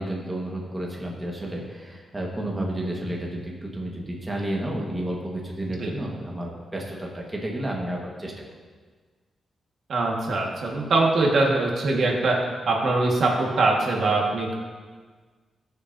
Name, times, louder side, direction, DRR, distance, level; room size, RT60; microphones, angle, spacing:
voice 1, 0.0-8.5, right 1 dB, 15° right, -2 dB, 1.6 m, -31 dB
voice 2, 9.9-12.4 12.7-14.6, right 3 dB, 65° right, -1 dB, 1.7 m, -22 dB
20.0 x 6.8 x 2.8 m, 1.5 s
wide cardioid pair, 120°, 0 cm